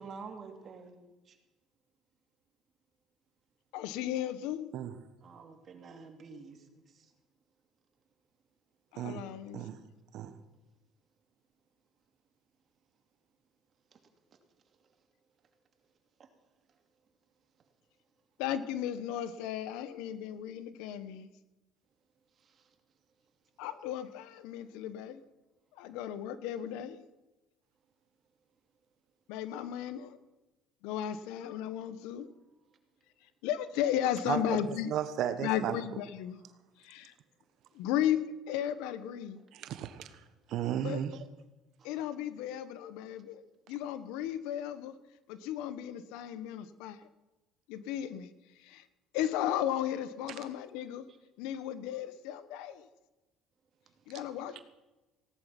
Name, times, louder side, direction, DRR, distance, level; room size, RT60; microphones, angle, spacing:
voice 1, 0.0-1.4 5.2-6.6 6.9-7.1 16.2-16.3 22.4-22.7 41.8-41.9 54.1-54.4, right 4 dB, 45° right, 2.7 m, -49 dB
voice 2, 3.7-4.7 8.9-9.6 18.4-21.3 23.6-25.2 25.8-27.0 29.3-30.2 30.8-32.3 33.4-34.9 35.4-36.4 36.8-37.1 37.7-38.2 38.5-39.4 40.8-41.0 41.8-43.4 43.7-44.9 45.3-47.0 47.7-48.3 48.6-48.8 49.1-51.0 51.4-52.9 54.1-54.6, left 11 dB, 85° left, 1.0 m, -35 dB
voice 3, 34.3-35.8 39.5-40.1 40.5-41.2, right 10 dB, 65° right, 1.2 m, -34 dB
17.5 x 11.5 x 5.9 m
supercardioid pair, 100°, 0 cm